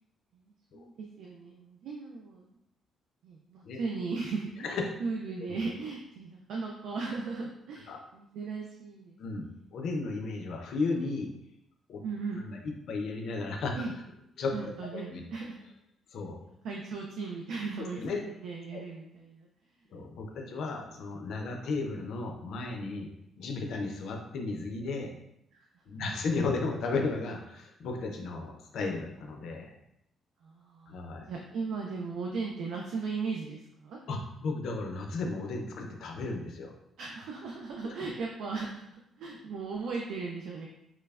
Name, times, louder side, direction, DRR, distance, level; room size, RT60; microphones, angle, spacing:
voice 1, 0.3-2.5 3.2-9.2 12.0-12.4 13.7-13.9 14.5-15.6 16.3-19.5 20.4-20.5 25.5-25.7 30.4-34.0 37.0-40.7, right 4 dB, 80° right, -1 dB, 0.3 m, -37 dB
voice 2, 9.2-11.3 11.9-12.0 12.3-13.7 14.4-14.5 14.9-15.2 16.1-16.4 18.0-18.2 18.7-18.8 19.9-23.1 23.4-25.1 25.9-29.7 30.9-31.3 34.1-36.7, left 3 dB, 75° left, 2 dB, 0.4 m, -34 dB
3.1 x 2.0 x 2.3 m, 0.79 s
cardioid pair, 90°, 0 cm